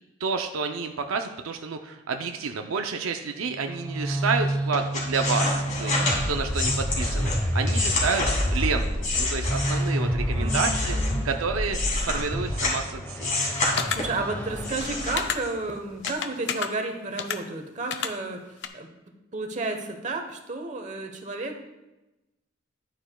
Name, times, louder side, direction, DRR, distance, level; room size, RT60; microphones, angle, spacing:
voice 1, 0.2-6.0 6.3-8.2 8.5-11.0 11.2-13.3, right 5 dB, 80° right, 5 dB, 0.5 m, -29 dB
sound 1, 3.5-15.4, equal, 10° left, 1.1 m, -28 dB
sound 2, 4.7-10.0 10.4-12.8 13.2-14.2 14.6-15.7 16.0-16.1, left 3 dB, 40° left, 2.5 m, -29 dB
voice 2, 10.3-11.2 13.8-18.9 19.3-21.6, right 2 dB, 35° right, 5 dB, 1.0 m, -32 dB
sound 3, 13.8-14.0 15.2-15.4 16.1-16.7 17.2-17.4 17.9-18.1 18.6-18.7, left 7 dB, 55° left, 0.5 m, -28 dB
11.0 x 9.0 x 2.3 m, 1.0 s
head